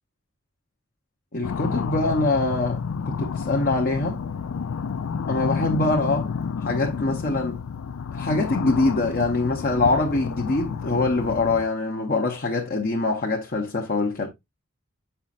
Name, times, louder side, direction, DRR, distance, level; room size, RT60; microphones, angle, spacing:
voice 1, 1.3-4.2 5.3-6.3 6.6-7.6 8.1-14.3, left 3 dB, 45° left, 1.0 m, -24 dB
sound 1, 1.4-11.6, left 6 dB, 70° left, 0.4 m, -30 dB
7.4 x 5.7 x 2.5 m
head